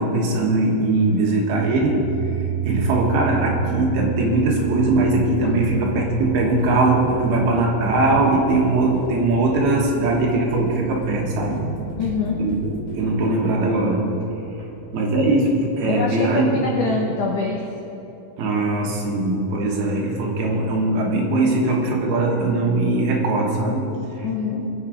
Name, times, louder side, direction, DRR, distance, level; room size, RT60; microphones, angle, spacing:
voice 1, 0.0-2.0 2.6-11.6 12.4-14.1 14.9-16.6 18.4-23.9 24.2-24.3, right 2 dB, 65° right, -1 dB, 3.1 m, -20 dB
sound 1, 1.7-12.0, right 8 dB, 35° left, 1.1 m, -31 dB
sound 2, 5.1-13.0, right 2 dB, 55° left, 2.2 m, -38 dB
sound 3, 11.1-17.7, right 3 dB, 85° right, 3.4 m, -39 dB
voice 2, 12.0-12.4 15.9-17.6 24.2-24.6, left 4 dB, 80° left, -1 dB, 1.8 m, -24 dB
22.0 x 7.4 x 5.1 m, 2.9 s
omnidirectional pair, 5.2 m